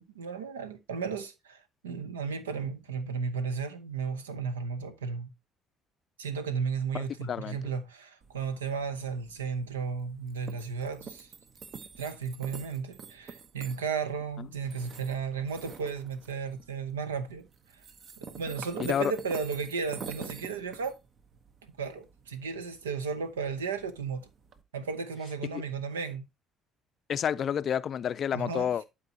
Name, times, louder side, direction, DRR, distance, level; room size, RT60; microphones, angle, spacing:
voice 1, 0.0-5.3 6.2-11.3 12.0-17.5 18.2-21.0 21.8-24.3 24.7-26.3 28.3-28.7, right 5 dB, 85° right, 0.8 m, -34 dB
voice 2, 6.9-7.6 18.9-19.1 25.5-25.6 27.1-28.8, left 8 dB, 50° left, 0.4 m, -29 dB
sound 1, 8.2-24.6, right 5 dB, 50° right, 0.9 m, -48 dB
11.5 x 4.7 x 2.8 m
hypercardioid pair, 50°, 0 cm